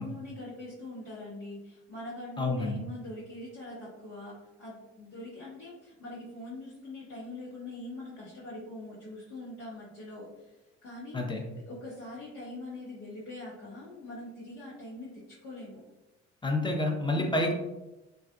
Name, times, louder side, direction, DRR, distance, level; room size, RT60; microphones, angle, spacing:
voice 1, 0.0-10.5 10.8-11.2 11.7-15.8 17.1-17.4, left 2 dB, 75° left, -10 dB, 1.0 m, -43 dB
voice 2, 2.4-2.8 11.1-11.4 16.4-17.5, left 2 dB, 15° left, 2 dB, 0.6 m, -28 dB
3.3 x 2.3 x 2.3 m, 0.99 s
hypercardioid pair, 50°, 35 cm